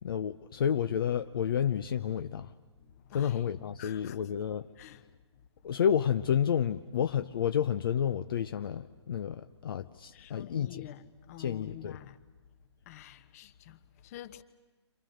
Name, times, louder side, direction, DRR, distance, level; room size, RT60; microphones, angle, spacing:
voice 1, 0.0-2.5 3.1-4.7 5.6-10.9 11.4-12.0, left 8 dB, 50° left, 0.8 m, -30 dB
voice 2, 2.8-3.4 3.8-4.2 4.8-5.1 10.1-12.2 12.9-14.4, left 13 dB, 35° left, 1.1 m, -48 dB
30.0 x 27.0 x 6.5 m
hypercardioid pair, 145°, 15 cm